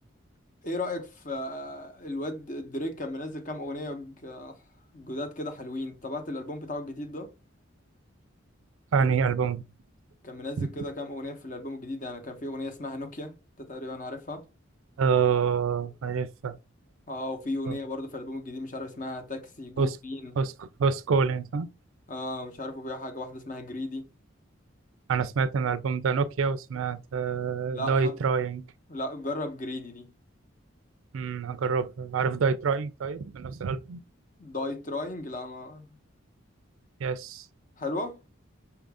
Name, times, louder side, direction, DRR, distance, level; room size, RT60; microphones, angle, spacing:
voice 1, 0.6-4.6 4.9-7.3 10.2-14.4 17.1-20.3 22.1-24.1 27.7-28.2 28.9-30.1 34.4-35.9 37.8-38.2, left 1 dB, 40° left, 0.9 m, -35 dB
voice 2, 8.9-9.7 10.6-10.7 15.0-16.6 17.7-17.8 19.8-20.0 20.4-21.7 25.1-28.6 31.1-34.0 37.0-37.5, right 5 dB, 90° right, 0.4 m, -27 dB
5.8 x 2.5 x 3.4 m
head